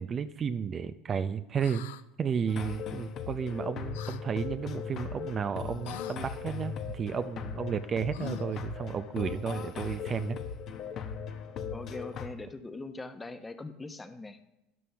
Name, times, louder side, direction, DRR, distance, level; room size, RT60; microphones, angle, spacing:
voice 1, 0.0-1.9 2.2-10.4, right 7 dB, 35° right, 11 dB, 0.5 m, -32 dB
sound 1, 1.6-2.0 3.9-4.2 5.8-6.2 8.1-8.6, left 13 dB, 85° left, 0.5 m, -43 dB
sound 2, 2.5-12.3, left 7 dB, 50° left, 1.1 m, -38 dB
voice 2, 11.7-14.4, left 3 dB, 15° left, 9 dB, 1.0 m, -41 dB
12.5 x 11.0 x 3.5 m, 0.89 s
supercardioid pair, 100°, 0 cm